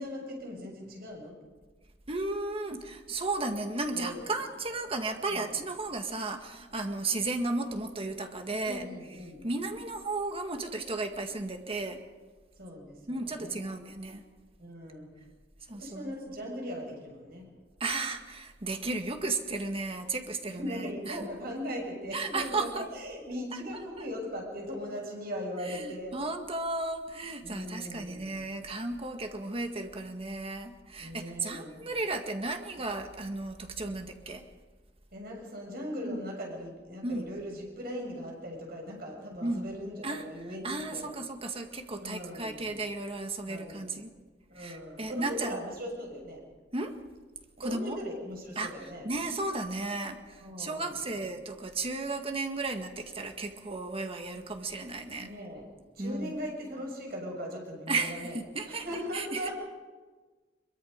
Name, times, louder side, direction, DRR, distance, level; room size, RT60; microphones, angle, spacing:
voice 1, 0.0-1.3 3.9-4.3 4.7-4.8 5.3-5.6 8.6-9.5 12.6-13.7 14.6-15.1 15.7-17.5 20.5-26.2 27.4-28.4 31.0-31.8 35.1-41.2 42.0-42.8 43.5-44.0 44.5-46.4 47.6-49.1 50.4-51.2 55.2-55.7 55.9-58.4 58.7-59.5, equal, 60° right, 0 dB, 7.1 m, -39 dB
voice 2, 2.1-8.8 9.4-12.0 13.1-14.2 15.7-16.1 17.8-21.3 22.1-22.9 25.7-34.5 36.0-36.2 37.0-37.3 39.4-39.7 40.0-40.3 40.6-44.1 44.6-45.6 46.7-46.9 47.6-48.0 48.6-48.7 49.0-55.3 56.0-56.4 57.9-58.8 59.1-59.5, right 2 dB, 30° right, 5 dB, 1.8 m, -34 dB
23.0 x 23.0 x 5.2 m, 1.3 s
head